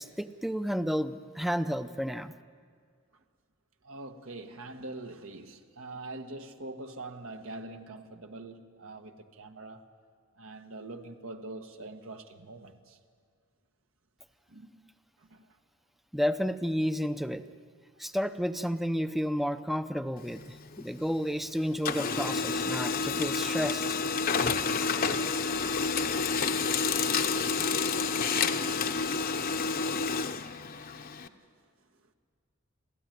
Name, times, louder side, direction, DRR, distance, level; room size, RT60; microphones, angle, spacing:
voice 1, 0.0-2.3 16.1-17.4 18.0-23.8, equal, ahead, 0.6 m, -31 dB
voice 2, 3.8-9.8 10.4-13.0 14.5-14.9 15.2-15.6 30.9-31.3 31.6-31.7, right 2 dB, 75° right, 1.4 m, -45 dB
Printer, 20.2-21.4 21.7-31.3, left 5 dB, 45° left, 0.9 m, -29 dB
30.0 x 13.5 x 9.3 m
head